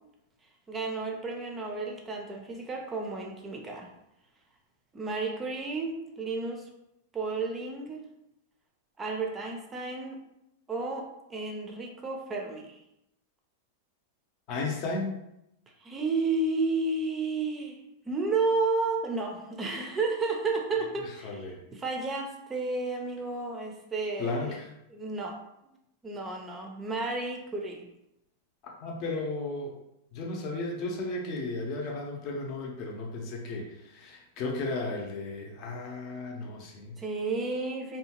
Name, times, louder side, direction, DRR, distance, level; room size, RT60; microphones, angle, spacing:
voice 1, 0.7-3.9 4.9-6.7 7.1-8.0 9.0-10.2 10.7-12.8 15.8-17.8 18.1-24.6 24.9-25.4 26.0-27.9 37.0-38.0, right 3 dB, 20° right, 1 dB, 0.5 m, -32 dB
voice 2, 14.5-15.1 21.2-21.6 24.2-24.7 28.6-29.7 30.1-37.0, left 2 dB, 45° left, 0 dB, 0.7 m, -34 dB
2.7 x 2.2 x 2.9 m, 0.84 s
hypercardioid pair, 120°, 0 cm